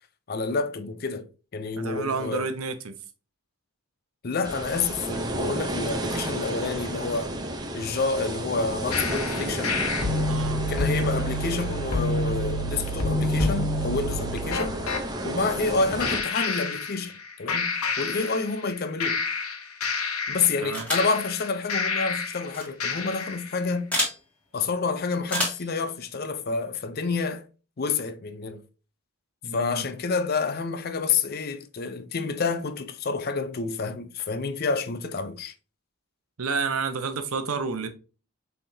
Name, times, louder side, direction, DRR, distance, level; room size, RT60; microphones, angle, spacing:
voice 1, 0.3-2.5 4.2-7.3 7.7-9.8 10.7-14.8 15.2-19.2 20.3-23.9 24.5-27.5 27.8-28.6 29.5-35.5, left 4 dB, 45° left, 0.5 m, -29 dB
voice 2, 1.8-2.9 10.2-10.6 20.6-20.9 29.4-29.9 36.4-37.9, right 4 dB, 80° right, 0.8 m, -30 dB
sound 1, 4.4-16.2, right 1 dB, 20° right, 0.6 m, -32 dB
sound 2, 8.9-15.0 16.0-17.2 17.5-18.7 19.0-22.4 22.8-23.4, left 3 dB, 85° left, 1.0 m, -28 dB
sound 3, 20.7-21.2 22.5-22.6 23.9-24.2 25.3-25.7, left 1 dB, 5° left, 1.8 m, -28 dB
5.6 x 3.5 x 2.6 m
head